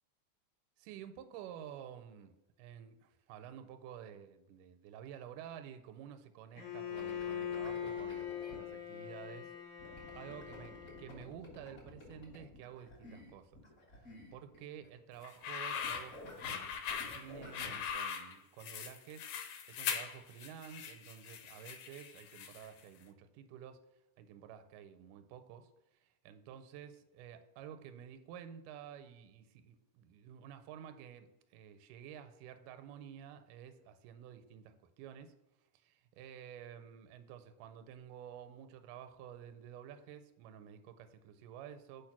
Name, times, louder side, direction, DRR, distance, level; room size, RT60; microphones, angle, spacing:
voice 1, 0.8-9.5 10.2-10.7 11.0-13.6 14.3-23.8 24.2-35.4 35.7-42.1, right 9 dB, 85° right, 2.1 m, -51 dB
Bowed string instrument, 6.6-11.3, left 9 dB, 60° left, 2.1 m, -42 dB
sound 1, 6.9-8.6 9.8-14.9 15.1-15.5 15.7-17.9, left 1 dB, 40° left, 1.3 m, -52 dB
sound 2, 15.2-22.8, left 7 dB, 80° left, 2.1 m, -41 dB
4.8 x 4.6 x 5.8 m
omnidirectional pair, 3.6 m